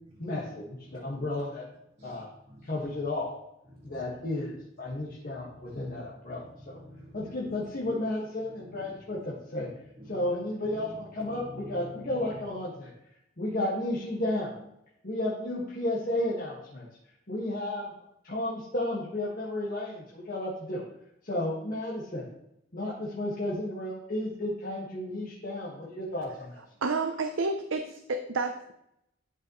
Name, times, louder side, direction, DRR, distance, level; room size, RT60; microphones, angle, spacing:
voice 1, 0.2-1.6 2.0-2.3 2.6-3.4 3.8-6.8 7.1-9.7 10.1-12.9 13.4-14.6 15.0-16.9 17.3-17.9 18.2-20.8 21.2-22.3 22.7-26.6, left 1 dB, 45° left, -6 dB, 1.6 m, -33 dB
voice 2, 0.9-1.2 2.0-2.7 3.7-4.0 4.8-5.0 5.3-6.0 6.2-7.3 8.6-9.3 9.6-10.3 10.7-10.9 11.2-11.9, equal, 30° right, -7 dB, 1.9 m, -49 dB
voice 3, 26.8-28.7, right 3 dB, 70° right, 6 dB, 0.6 m, -30 dB
11.5 x 5.6 x 3.0 m, 0.81 s
head